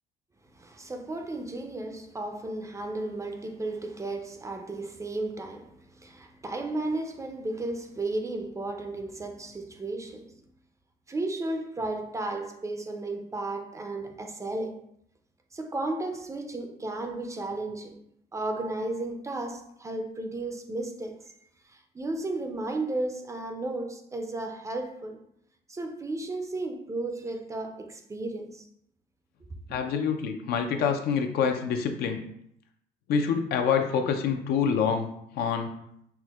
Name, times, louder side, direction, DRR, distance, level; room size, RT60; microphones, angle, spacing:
voice 1, 0.5-10.4 11.1-14.8 15.5-18.0 18.3-21.3 21.6-25.2 25.7-28.7, right 2 dB, 20° right, 0.4 m, -34 dB
voice 2, 29.7-32.2 33.1-35.1 35.3-35.8, left 6 dB, 70° left, 0.5 m, -26 dB
5.7 x 2.1 x 2.3 m
cardioid pair, 110°, 17 cm